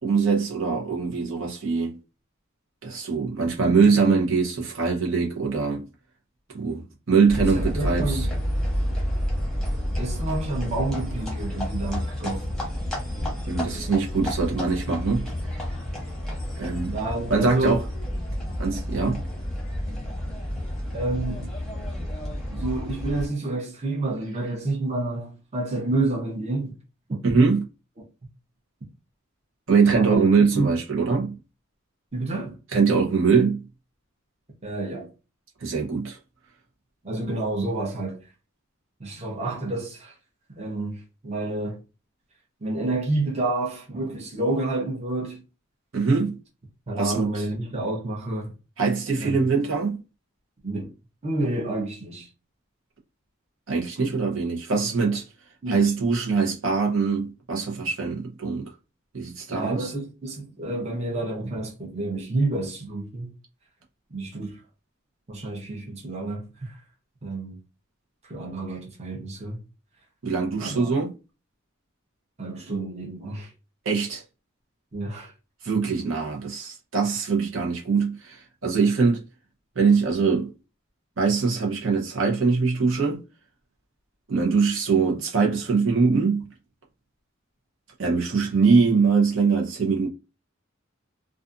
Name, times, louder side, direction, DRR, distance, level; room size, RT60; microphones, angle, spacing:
voice 1, 0.0-2.0 2.8-5.8 6.5-8.3 13.5-15.3 16.6-17.0 17.3-17.8 18.6-19.2 27.2-27.7 29.7-31.4 32.7-33.7 35.6-36.2 45.9-46.4 47.0-47.4 48.8-50.0 53.7-55.3 55.7-58.7 59.1-59.9 70.2-71.1 73.8-74.2 75.6-79.2 79.7-80.5 81.2-83.2 84.3-86.5 88.0-90.1, right 4 dB, 75° right, 0.8 m, -22 dB
sound 1, 7.3-23.3, equal, 5° left, 0.9 m, -30 dB
voice 2, 7.4-8.3 10.0-12.4 16.9-17.8 20.9-21.5 22.5-26.7 27.1-27.2 30.0-30.2 30.5-30.7 32.1-32.6 34.6-35.1 37.0-38.2 39.0-40.1 40.6-41.8 42.6-45.4 46.9-48.5 49.2-49.4 50.6-50.9 51.2-52.3 55.6-55.9 59.5-63.3 64.1-64.6 65.3-66.8 67.2-67.6 68.2-69.6 70.6-70.9 72.4-73.5 74.9-75.3, right 2 dB, 35° right, 0.7 m, -29 dB
2.5 x 2.4 x 2.5 m
head